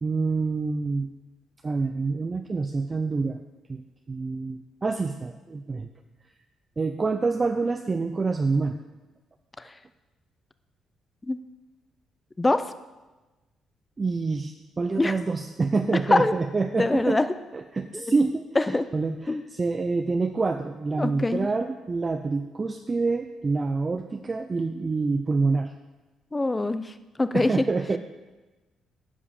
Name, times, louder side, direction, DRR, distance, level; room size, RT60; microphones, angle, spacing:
voice 1, 0.0-1.1 1.6-3.4 3.7-5.9 6.8-8.8 14.0-17.2 17.5-25.7 27.3-28.0, right 4 dB, 30° right, 5 dB, 0.6 m, -27 dB
voice 2, 16.8-17.3 17.9-18.1 18.6-18.8 19.3-19.4 21.0-21.5 26.3-26.9 27.2-27.5, left 2 dB, 20° left, 12 dB, 0.6 m, -23 dB
10.0 x 5.5 x 6.5 m, 1.1 s
cardioid pair, 90°, 0 cm